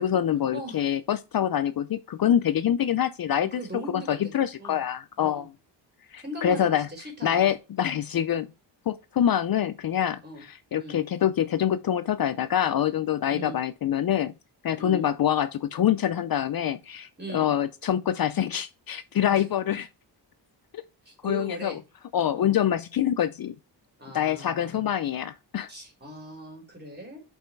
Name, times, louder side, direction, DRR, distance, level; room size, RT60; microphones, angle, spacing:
voice 1, 0.0-3.6 3.9-5.5 6.1-6.9 7.2-8.5 8.9-14.3 14.6-19.9 20.7-20.8 21.2-21.8 22.1-23.5 24.1-25.7, left 10 dB, 50° left, 0.5 m, -25 dB
voice 2, 0.5-0.8 3.5-4.3 4.6-4.8 5.2-5.5 6.2-7.5 10.2-10.4 10.7-11.0 13.2-13.6 14.8-15.0 17.2-17.5 19.3-19.4 21.0-21.8 22.3-22.6 24.0-24.9 25.7-27.2, equal, 20° right, 4.3 m, -39 dB
7.1 x 5.5 x 4.5 m
wide cardioid pair, 150°, 45 cm